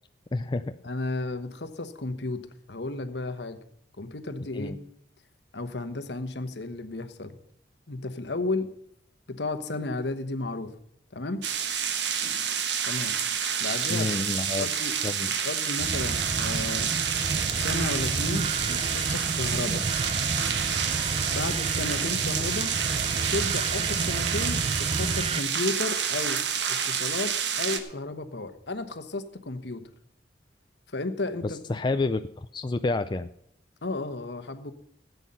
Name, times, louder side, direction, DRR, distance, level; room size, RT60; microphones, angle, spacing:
voice 1, 0.3-0.8 4.5-4.8 13.9-14.7 15.0-15.3 31.4-33.3, left 2 dB, 25° left, 9 dB, 0.4 m, -29 dB
voice 2, 0.8-2.4 2.7-3.6 4.0-4.8 5.5-7.4 7.9-8.7 9.3-10.7 11.1-11.4 12.8-13.2 13.6-14.1 14.6-14.9 15.4-16.9 17.5-19.9 21.3-22.7 23.3-26.4 26.7-29.9 30.9-31.6 33.8-34.7, left 2 dB, 65° left, 9 dB, 1.2 m, -33 dB
sound 1, 11.4-27.8, right 7 dB, 70° right, 1.3 m, -28 dB
sound 2, 15.8-25.4, right 3 dB, 35° right, 0.4 m, -31 dB
15.0 x 8.2 x 5.6 m, 0.69 s
head